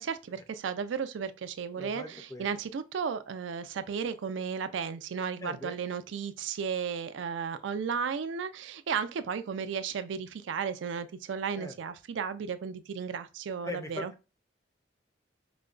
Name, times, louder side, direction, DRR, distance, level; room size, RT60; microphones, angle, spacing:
voice 1, 0.0-14.1, right 6 dB, 90° right, 0.4 m, -34 dB
voice 2, 1.7-2.5 5.4-5.8 11.6-11.7 13.6-14.3, left 1 dB, 20° left, 0.5 m, -40 dB
4.9 x 2.1 x 2.4 m
head